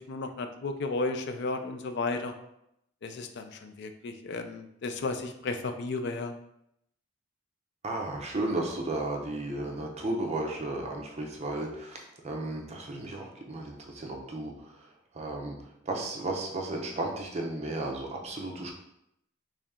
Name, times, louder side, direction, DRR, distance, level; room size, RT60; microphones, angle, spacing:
voice 1, 0.0-2.3 3.0-6.3, left 3 dB, 60° left, 6 dB, 0.4 m, -33 dB
voice 2, 7.8-18.7, right 2 dB, 35° right, 1 dB, 0.6 m, -34 dB
3.2 x 2.8 x 3.6 m, 0.79 s
head